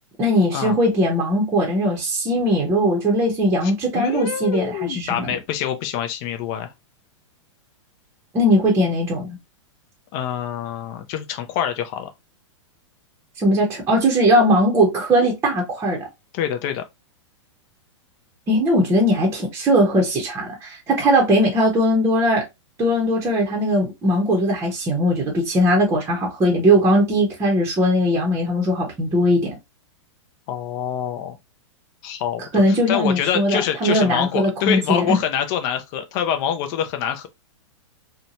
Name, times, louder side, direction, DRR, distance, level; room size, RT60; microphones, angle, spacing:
voice 1, 0.2-5.4 8.3-9.4 13.4-16.1 18.5-22.4 22.8-29.6 32.5-35.2, equal, 15° right, 0.7 m, -19 dB
voice 2, 3.6-6.7 10.1-12.1 16.3-16.8 30.5-31.4 32.0-37.3, left 9 dB, 40° left, 0.4 m, -25 dB
2.7 x 2.2 x 2.7 m
hypercardioid pair, 130°, 16 cm